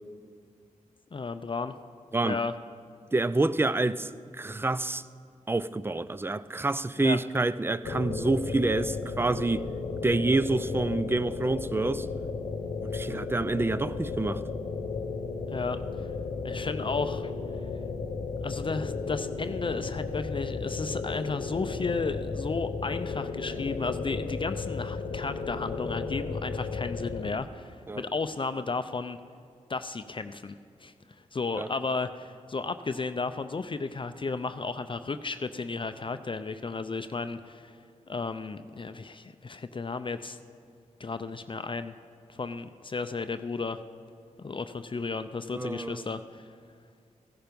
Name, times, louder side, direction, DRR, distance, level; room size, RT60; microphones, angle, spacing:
voice 1, 1.1-1.7 2.2-2.5 7.0-7.2 15.5-15.8 16.4-17.3 18.4-29.2 29.7-30.9 31.3-37.8 38.1-40.4 41.0-41.9 42.3-43.8 44.4-46.5, left 4 dB, 40° left, 10 dB, 0.5 m, -33 dB
voice 2, 3.1-5.0 5.5-9.7 10.0-12.1 12.8-14.4 27.9-28.1 31.6-31.7 45.5-46.1, right 2 dB, 15° right, 15 dB, 0.4 m, -27 dB
sound 1, 7.8-27.3, left 4 dB, 80° left, 1.0 m, -34 dB
16.0 x 10.5 x 5.2 m, 2.2 s
cardioid pair, 55°, 13 cm